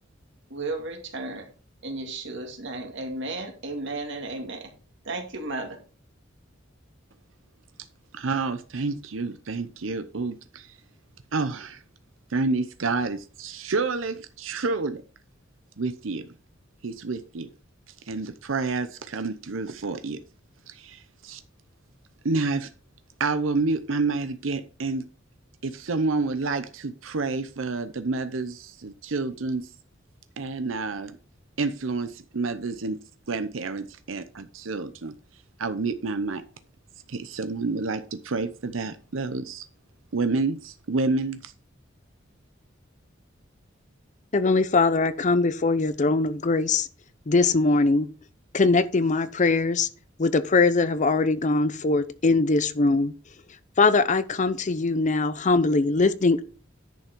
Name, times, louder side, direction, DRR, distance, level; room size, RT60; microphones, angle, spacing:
voice 1, 0.5-1.5 1.8-4.7 5.1-5.8, right 2 dB, 65° right, 2.2 m, -34 dB
voice 2, 8.1-10.8 11.3-11.8 12.3-15.0 15.8-16.3 16.8-17.5 18.1-20.2 20.7-21.4 22.2-22.7 23.2-25.1 25.6-29.7 30.4-31.2 31.6-33.0 33.3-35.1 35.6-36.4 37.1-39.6 40.1-41.5, right 3 dB, 90° right, 0.7 m, -29 dB
voice 3, 44.3-46.9 47.3-48.1 48.5-49.9 50.2-53.1 53.8-56.4, left 3 dB, 40° left, 0.6 m, -21 dB
10.5 x 5.8 x 4.5 m
head